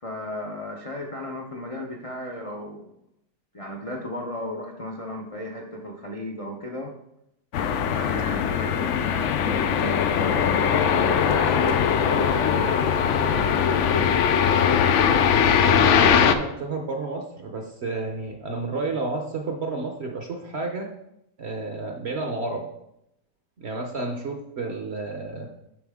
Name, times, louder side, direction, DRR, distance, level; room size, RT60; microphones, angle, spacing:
voice 1, 0.0-2.9 3.5-6.9 7.9-14.1, left 1 dB, 45° left, 0 dB, 0.4 m, -34 dB
sound 1, 7.5-16.3, left 7 dB, 85° left, 0.6 m, -21 dB
voice 2, 15.6-20.9 21.4-22.6 23.6-25.5, right 3 dB, 50° right, 3 dB, 0.8 m, -31 dB
11.0 x 4.1 x 3.6 m, 0.82 s
omnidirectional pair, 1.8 m